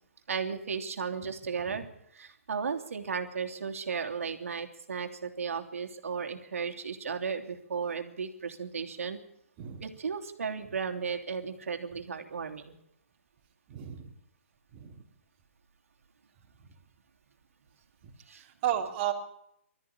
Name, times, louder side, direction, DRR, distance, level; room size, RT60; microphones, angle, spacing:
voice 1, 0.3-1.8 2.1-9.2 9.8-12.8 18.3-18.4, right 6 dB, 80° right, 5 dB, 2.9 m, -35 dB
voice 2, 13.7-14.1 14.7-15.0 18.0-18.1 18.4-19.1, right 11 dB, 30° right, 0 dB, 3.4 m, -33 dB
19.5 x 13.5 x 9.9 m, 0.75 s
hypercardioid pair, 150°, 7 cm